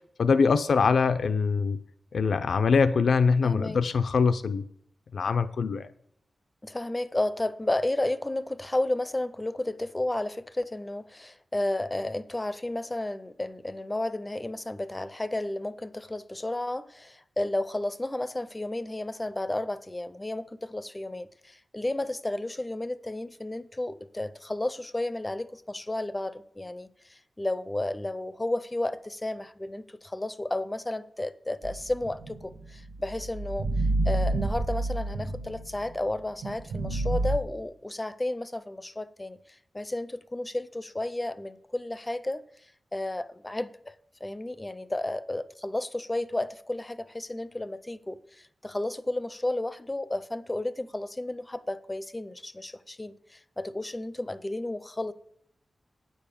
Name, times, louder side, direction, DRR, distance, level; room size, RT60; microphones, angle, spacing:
voice 1, 0.2-1.8 2.1-4.6 5.1-5.9, left 5 dB, 75° left, 0.5 m, -23 dB
voice 2, 3.4-3.8 6.6-33.7 34.0-42.4 42.9-43.9 44.2-55.1, left 1 dB, 15° left, 0.5 m, -32 dB
sound 1, 31.6-35.9 36.4-37.4, right 2 dB, 80° right, 1.3 m, -30 dB
9.7 x 7.0 x 7.0 m
wide cardioid pair, 125°, 0 cm